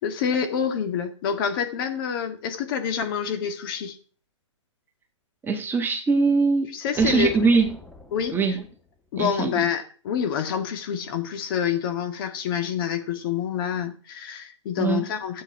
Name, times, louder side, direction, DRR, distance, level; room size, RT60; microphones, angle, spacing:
voice 1, 0.0-4.0 6.7-7.3 8.1-8.4 9.1-15.4, left 7 dB, 45° left, 7 dB, 1.8 m, -27 dB
voice 2, 5.4-7.7 8.3-8.6 9.2-9.6 14.8-15.0, right 4 dB, 10° right, 4 dB, 1.6 m, -22 dB
sound 1, 6.9-8.9, left 2 dB, 5° left, 1.2 m, -42 dB
13.0 x 8.6 x 4.8 m, 0.41 s
hypercardioid pair, 135°, 16 cm